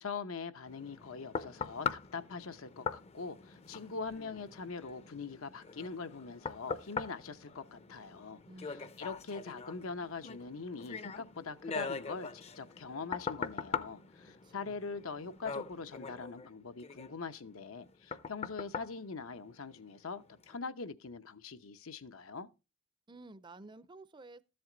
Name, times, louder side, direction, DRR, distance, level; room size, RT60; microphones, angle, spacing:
voice 1, 0.0-22.5, left 4 dB, 80° left, 0.8 m, -43 dB
sound 1, 0.7-19.9 20.4-20.6, left 5 dB, 30° left, 0.5 m, -42 dB
voice 2, 8.5-8.9 14.4-14.8 23.1-24.4, right 2 dB, 20° right, 0.5 m, -52 dB
13.5 x 7.8 x 3.9 m
head